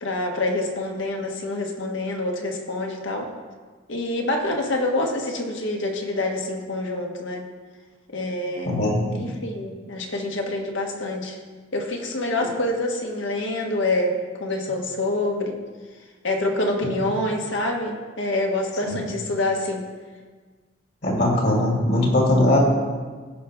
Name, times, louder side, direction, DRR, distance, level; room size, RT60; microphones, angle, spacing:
voice 1, 0.0-3.3 3.9-7.5 8.1-8.7 9.2-11.4 11.7-15.6 16.2-19.8, left 2 dB, 75° left, 2 dB, 1.4 m, -26 dB
voice 2, 8.7-9.2 18.8-19.0 21.0-22.6, left 1 dB, 55° left, -3 dB, 2.6 m, -20 dB
17.0 x 5.7 x 3.4 m, 1.4 s
head